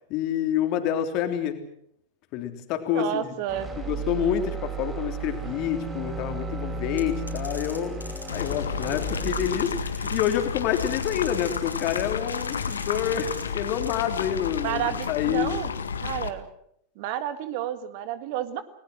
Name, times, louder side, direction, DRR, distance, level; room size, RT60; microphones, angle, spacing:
voice 1, 0.1-1.6 2.3-3.3 3.8-8.0 8.3-15.5, left 10 dB, 40° left, 6 dB, 3.3 m, -28 dB
voice 2, 2.9-3.7 14.6-15.7 16.0-16.5 17.0-18.6, right 11 dB, 45° right, 12 dB, 1.8 m, -30 dB
sound 1, 3.5-11.6, right 4 dB, 20° right, 6.4 m, -35 dB
sound 2, 7.0-8.6 8.8-10.4 10.8-12.0 12.3-13.4 13.8-14.0, left 1 dB, 90° left, 5.2 m, -41 dB
sound 3, 8.3-16.3, left 6 dB, 70° left, 1.7 m, -31 dB
30.0 x 20.0 x 6.3 m, 0.72 s
figure-of-eight pair, 90°, 0 cm